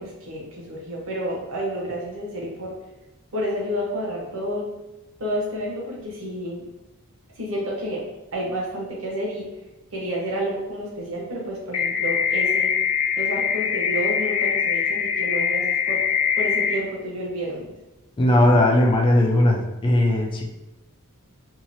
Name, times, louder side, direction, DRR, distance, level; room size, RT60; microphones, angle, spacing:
voice 1, 0.0-2.7 3.3-4.7 5.2-6.6 7.4-8.1 8.3-9.5 9.9-12.7 13.2-16.0 16.4-17.7, equal, 65° right, -3 dB, 0.9 m, -30 dB
sound 1, 11.7-16.7, left 7 dB, 85° left, 0.5 m, -23 dB
voice 2, 18.2-20.5, left 1 dB, 20° left, 1 dB, 0.3 m, -18 dB
2.8 x 2.4 x 2.6 m, 1.0 s
head